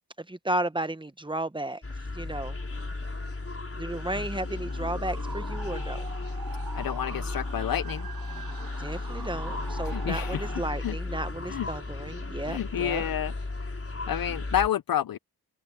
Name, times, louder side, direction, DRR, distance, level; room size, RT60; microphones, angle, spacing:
voice 1, 0.2-1.8 2.1-2.6 3.7-6.1 8.8-13.1, right 1 dB, 10° right, 1.0 m, -33 dB
sound 1, 1.8-14.7, left 3 dB, 35° left, 4.6 m, -34 dB
sound 2, 4.7-10.6, right 5 dB, 70° right, 4.9 m, -43 dB
voice 2, 6.7-8.1 9.9-10.4 10.8-10.9 11.5-11.7 12.5-13.3 13.6-13.8 14.1-15.2, left 10 dB, 65° left, 0.5 m, -29 dB
wide cardioid pair, 65°, 38 cm